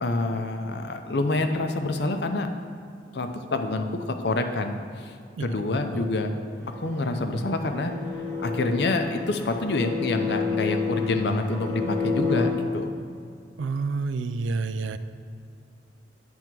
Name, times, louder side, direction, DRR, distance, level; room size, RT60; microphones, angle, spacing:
voice 1, 0.0-2.5 3.1-5.1 5.4-6.3 6.8-7.9 8.4-12.9, left 2 dB, 60° left, 6 dB, 0.6 m, -27 dB
sound 1, 6.5-12.5, left 5 dB, 15° left, 0.7 m, -30 dB
voice 2, 13.6-15.0, right 4 dB, 85° right, 12 dB, 0.4 m, -28 dB
8.9 x 3.5 x 6.0 m, 2.4 s
head